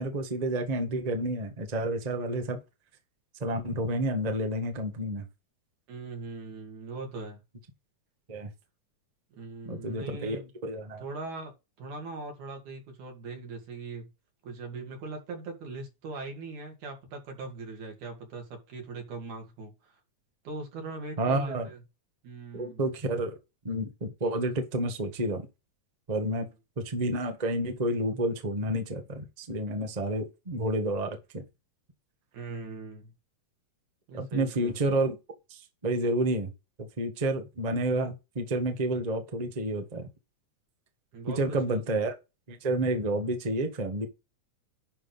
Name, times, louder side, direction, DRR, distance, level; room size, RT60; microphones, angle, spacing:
voice 1, 0.0-2.6 3.4-5.2 8.3-8.5 9.6-10.4 10.6-11.0 21.2-21.7 22.5-23.4 23.6-25.5 26.1-26.5 26.8-31.4 34.1-35.1 35.5-36.5 36.8-40.1 41.3-42.1 42.5-44.1, right 1 dB, 25° right, 0.9 m, -30 dB
voice 2, 5.9-7.4 9.3-10.5 11.0-11.5 11.8-14.1 14.4-19.9 20.4-21.8 22.2-22.8 26.3-26.5 32.3-33.1 34.1-34.8 41.1-41.8, right 3 dB, 85° right, 3.9 m, -40 dB
11.0 x 3.7 x 5.5 m
omnidirectional pair, 3.4 m